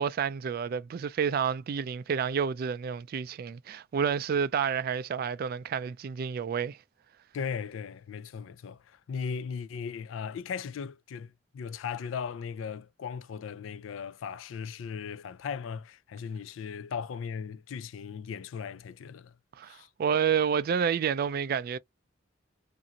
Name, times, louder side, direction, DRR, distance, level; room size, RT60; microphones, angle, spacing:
voice 1, 0.0-6.8 19.6-21.8, right 7 dB, 50° right, 0.3 m, -29 dB
voice 2, 7.3-19.3 19.7-19.9, left 6 dB, 90° left, 0.3 m, -37 dB
2.6 x 2.5 x 2.8 m
head